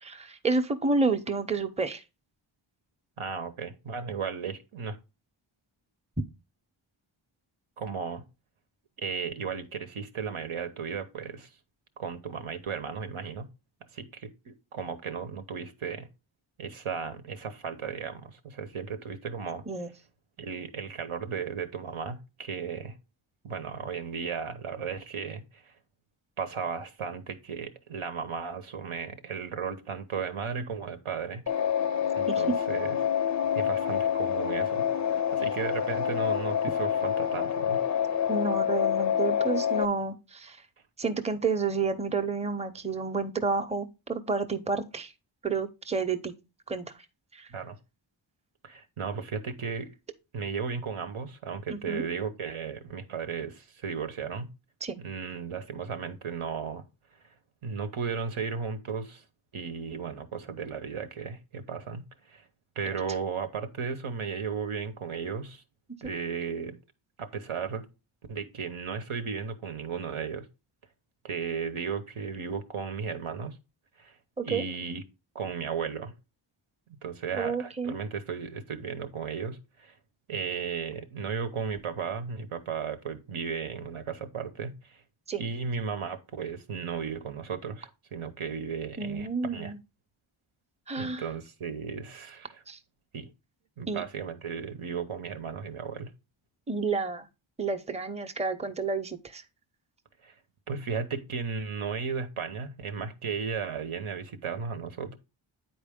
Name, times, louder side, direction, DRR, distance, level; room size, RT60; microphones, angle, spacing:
voice 1, 0.0-2.0 19.7-19.9 32.3-32.6 38.3-40.6 41.0-45.1 45.4-46.3 46.7-46.8 47.3-47.5 51.7-52.0 54.8-55.0 74.4-74.6 77.3-78.0 85.3-85.4 89.0-89.8 90.9-91.2 92.7-92.8 93.9-94.0 96.7-97.3 97.6-99.4, right 4 dB, 15° right, 0.7 m, -30 dB
voice 2, 3.2-5.0 7.8-8.2 9.0-11.5 12.0-13.5 13.9-16.1 16.6-19.6 20.4-23.0 23.4-25.7 26.4-31.4 32.2-33.0 33.5-34.9 35.3-38.0 47.5-47.8 48.6-49.9 50.3-54.5 55.0-56.8 57.6-59.2 59.5-62.4 62.8-65.6 66.0-66.8 67.2-67.9 68.3-70.5 71.2-73.6 74.0-74.1 74.4-75.0 75.3-76.1 77.0-80.0 80.3-85.0 85.4-89.7 90.9-92.6 93.1-93.3 93.8-96.1 100.2-100.3 100.7-105.2, right 6 dB, 90° right, 1.1 m, -35 dB
sound 1, 31.5-39.9, left 8 dB, 40° left, 0.4 m, -27 dB
9.4 x 4.4 x 3.5 m
wide cardioid pair, 105°, 48 cm